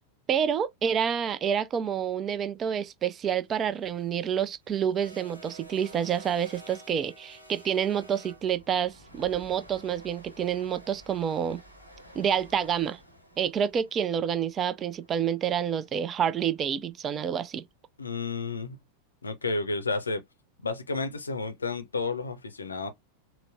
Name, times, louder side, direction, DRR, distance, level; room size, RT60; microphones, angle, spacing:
voice 1, 0.3-11.6 12.1-13.0 13.4-17.7, right 8 dB, 25° right, 0.4 m, -28 dB
sound 1, 3.7-15.9, right 1 dB, 85° right, 0.9 m, -51 dB
voice 2, 18.0-18.8 19.2-20.2 20.6-22.9, left 3 dB, 75° left, 0.5 m, -31 dB
3.9 x 2.0 x 2.6 m
figure-of-eight pair, 90°, 0 cm